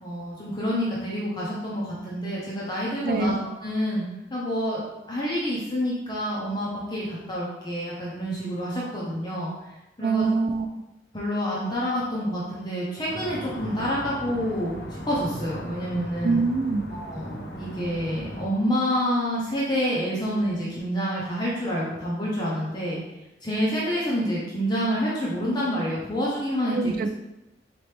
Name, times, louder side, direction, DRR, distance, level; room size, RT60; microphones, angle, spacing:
voice 1, 0.0-4.0 4.3-4.8 5.1-9.5 10.0-10.3 11.1-14.7 15.1-16.4 16.9-17.2 17.6-23.0 23.4-26.9, equal, 25° left, -6 dB, 0.7 m, -28 dB
voice 2, 3.0-3.4 10.0-10.7 16.2-16.8 26.6-27.1, right 4 dB, 55° right, 8 dB, 0.3 m, -24 dB
sound 1, 13.1-18.5, equal, 80° left, 0.8 m, -37 dB
4.1 x 3.1 x 3.3 m, 0.94 s
head